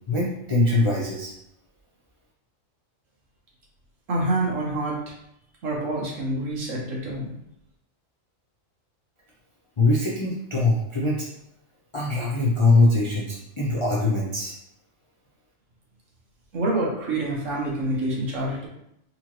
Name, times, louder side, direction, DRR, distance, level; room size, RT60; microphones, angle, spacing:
voice 1, 0.1-1.3 9.8-11.3 11.9-14.5, left 2 dB, 40° left, -5 dB, 0.4 m, -22 dB
voice 2, 4.1-5.1 5.6-7.3 16.5-18.7, right 2 dB, 75° right, -3 dB, 1.4 m, -27 dB
4.2 x 2.9 x 2.9 m, 0.79 s
omnidirectional pair, 1.4 m